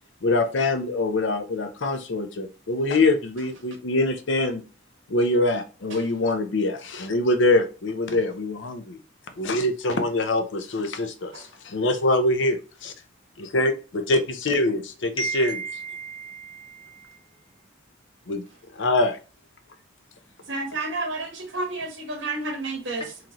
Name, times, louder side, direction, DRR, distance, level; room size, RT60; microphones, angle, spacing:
voice 1, 0.2-4.6 5.1-9.0 9.4-12.9 13.4-13.7 14.1-15.6 18.3-18.4 18.8-19.2, left 2 dB, 65° left, 0.6 m, -24 dB
voice 2, 15.2-17.2, right 4 dB, 30° left, 1.1 m, -33 dB
voice 3, 20.4-23.2, right 2 dB, 70° right, 1.3 m, -31 dB
3.8 x 3.1 x 2.9 m
head